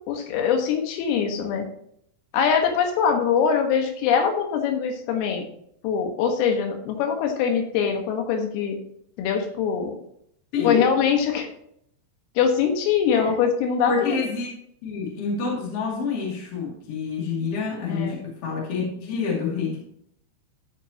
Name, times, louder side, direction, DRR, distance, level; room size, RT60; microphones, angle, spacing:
voice 1, 0.1-1.7 2.3-5.4 5.8-8.8 9.2-10.0 10.6-11.5 12.4-14.3 17.9-18.2, left 7 dB, 85° left, 4 dB, 4.1 m, -23 dB
voice 2, 10.5-10.8 13.1-13.3 13.9-14.5 14.8-19.8, left 5 dB, 40° left, -4 dB, 2.7 m, -27 dB
14.0 x 7.2 x 2.9 m, 0.69 s
omnidirectional pair, 5.8 m